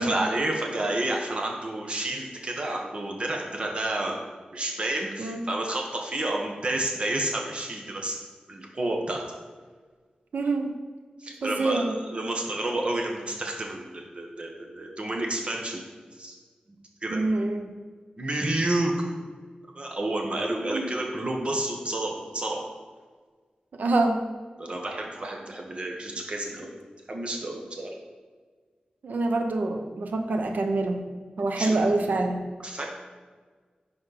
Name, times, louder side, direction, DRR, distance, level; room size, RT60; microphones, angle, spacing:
voice 1, 0.0-4.2 4.5-8.2 8.5-9.2 11.2-15.8 16.2-16.4 17.0-17.2 18.2-19.1 19.7-22.7 24.6-26.7 27.1-27.9 31.6-31.8 32.6-32.9, right 1 dB, 40° right, 1 dB, 1.3 m, -30 dB
voice 2, 10.3-10.7 11.4-12.0 17.1-17.7 20.7-20.9 23.8-24.2 29.0-31.0 31.4-32.4, right 2 dB, 80° right, 5 dB, 0.9 m, -26 dB
10.5 x 4.3 x 4.2 m, 1.5 s
wide cardioid pair, 115°, 3 cm